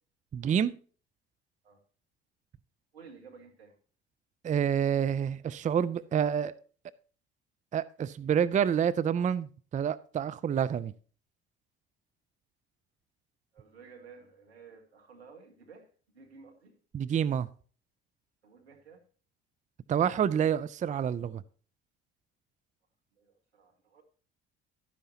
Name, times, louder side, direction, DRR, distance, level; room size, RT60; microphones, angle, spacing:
voice 1, 0.3-0.8 4.4-6.5 7.7-10.9 16.9-17.5 19.9-21.4, right 8 dB, 25° right, 17 dB, 0.5 m, -28 dB
voice 2, 2.9-3.8 13.5-16.8 18.4-19.0 23.1-24.0, right 5 dB, 85° right, 2 dB, 1.9 m, -53 dB
12.5 x 10.0 x 2.9 m, 0.41 s
figure-of-eight pair, 55°, 31 cm